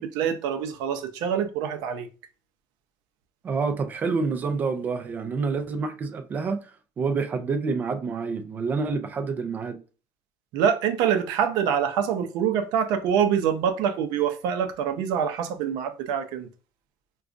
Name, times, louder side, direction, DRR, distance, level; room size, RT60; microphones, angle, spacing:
voice 1, 0.0-2.1 10.5-16.5, right 8 dB, 70° right, 0.6 m, -25 dB
voice 2, 3.4-6.6 7.0-9.8, right 4 dB, 25° right, 0.4 m, -28 dB
4.8 x 2.3 x 2.5 m
cardioid pair, 170°, 7 cm